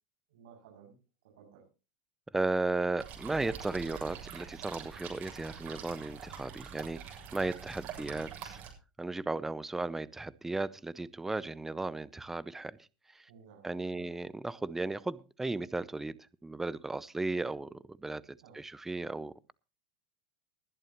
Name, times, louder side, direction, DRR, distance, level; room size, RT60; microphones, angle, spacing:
voice 1, 0.3-1.0 1.4-1.7 13.3-14.1 18.4-18.6, right 7 dB, 80° right, 7.2 m, -56 dB
voice 2, 2.3-7.0 7.3-8.6 9.0-12.8 13.6-18.2 18.6-19.5, right 2 dB, 10° right, 0.6 m, -35 dB
sound 1, 3.0-8.7, right 8 dB, 45° right, 7.4 m, -45 dB
20.0 x 11.0 x 3.0 m
supercardioid pair, 125°, 4 cm